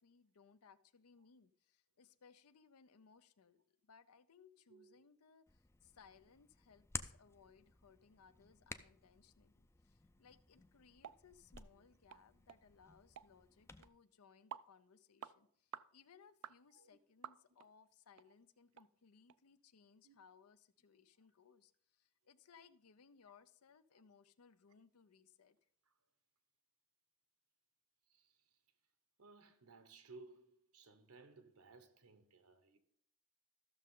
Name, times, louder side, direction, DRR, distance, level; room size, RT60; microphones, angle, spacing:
voice 1, 0.0-25.6, left 6 dB, 90° left, 0.6 m, -66 dB
voice 2, 4.7-5.1 11.7-11.8 16.7-17.0 20.0-20.1 25.9-26.0 28.1-28.6 29.2-32.8, right 3 dB, 90° right, 1.2 m, -61 dB
Hands, 5.5-13.9, left 3 dB, 10° left, 0.4 m, -54 dB
sound 1, 11.0-11.2 11.5-11.7 12.1-12.2 12.5-12.6 13.2-13.3 13.8-13.9 14.5-14.7 15.2-15.4 15.7-15.9 16.4-16.6 17.2-17.7 18.2-18.3 18.7-18.9 19.3-19.4, right 9 dB, 70° right, 0.3 m, -51 dB
14.0 x 6.5 x 3.8 m
head